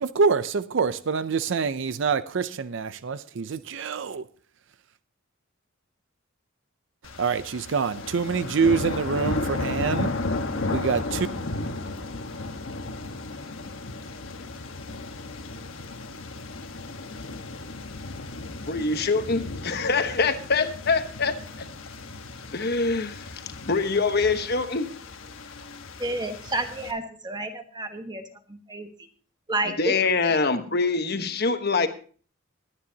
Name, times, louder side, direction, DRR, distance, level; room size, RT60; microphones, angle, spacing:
voice 1, 0.0-4.3 7.2-10.1 10.7-11.3, right 5 dB, 65° right, 0.5 m, -25 dB
sound 1, 7.0-26.9, left 2 dB, 75° left, 1.3 m, -34 dB
voice 2, 18.7-21.7 22.5-23.3 23.6-24.9 29.6-31.9, left 4 dB, 50° left, 1.2 m, -24 dB
voice 3, 26.0-28.2 28.5-28.9 29.5-29.9, right 2 dB, 20° right, 1.3 m, -30 dB
21.5 x 9.7 x 2.8 m
head